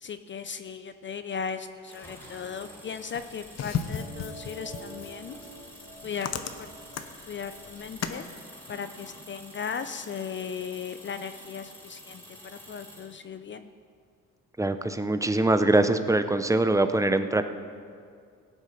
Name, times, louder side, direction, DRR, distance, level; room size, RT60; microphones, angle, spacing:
voice 1, 0.0-5.4 6.0-6.3 6.6-6.7 7.3-8.2 8.7-13.7, left 6 dB, 40° left, 10 dB, 0.6 m, -37 dB
sound 1, 1.9-13.2, equal, 10° left, 2.9 m, -49 dB
sound 2, 3.1-8.2, left 7 dB, 60° left, 0.9 m, -36 dB
sound 3, 3.7-9.7, right 3 dB, 55° right, 3.2 m, -49 dB
voice 2, 14.6-17.4, right 2 dB, 10° right, 10 dB, 0.7 m, -23 dB
17.0 x 8.0 x 5.8 m, 2.2 s
cardioid pair, 90°, 30 cm